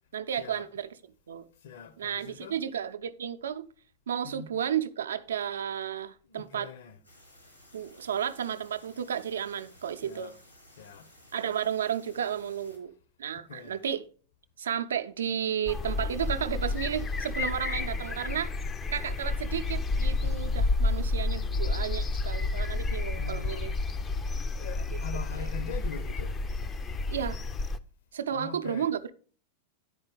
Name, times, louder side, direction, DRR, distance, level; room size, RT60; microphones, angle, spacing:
voice 1, 0.1-0.9 1.3-1.5 2.0-3.7 4.1-6.7 7.7-10.3 11.3-12.9 13.2-14.0 14.6-18.5 18.9-23.7 25.3-25.5 27.1-27.4 28.1-29.1, right 9 dB, 65° right, 0.5 m, -33 dB
voice 2, 1.6-2.6 4.2-4.5 6.3-7.0 10.0-10.3 10.8-11.1 13.3-13.8 20.3-20.4 21.0-21.1 22.9-23.8 24.5-26.4 28.3-28.9, left 7 dB, 55° left, 0.8 m, -43 dB
sound 1, 7.0-12.8, left 1 dB, 85° left, 4.1 m, -56 dB
sound 2, 15.7-27.8, left 3 dB, 20° left, 0.5 m, -30 dB
9.9 x 4.4 x 4.9 m
figure-of-eight pair, 90°, 0 cm